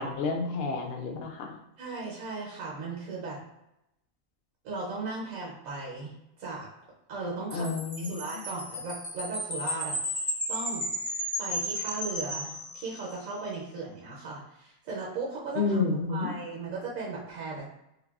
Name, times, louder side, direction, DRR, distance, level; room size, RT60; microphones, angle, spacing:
voice 1, 0.0-1.6 7.5-8.1 15.6-16.3, left 4 dB, 65° left, 2 dB, 0.6 m, -30 dB
voice 2, 1.8-3.4 4.6-6.1 6.4-6.7 7.1-10.0 10.5-10.9 11.4-15.8 16.1-17.7, right 3 dB, 75° right, -4 dB, 1.1 m, -37 dB
Wind chime, 7.5-13.2, equal, 20° left, 0.6 m, -34 dB
3.3 x 2.2 x 2.3 m, 0.85 s
omnidirectional pair, 1.5 m